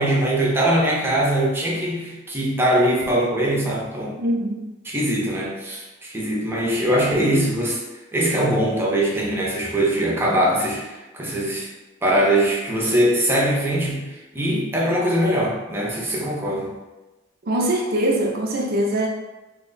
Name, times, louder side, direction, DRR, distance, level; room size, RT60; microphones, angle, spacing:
voice 1, 0.0-4.2 4.9-7.8 8.1-11.7 12.0-14.1 14.3-16.7, right 1 dB, 10° right, -4 dB, 0.6 m, -21 dB
voice 2, 4.2-4.6 17.4-19.1, right 1 dB, 50° right, 0 dB, 0.6 m, -22 dB
3.0 x 2.2 x 3.8 m, 1.1 s
head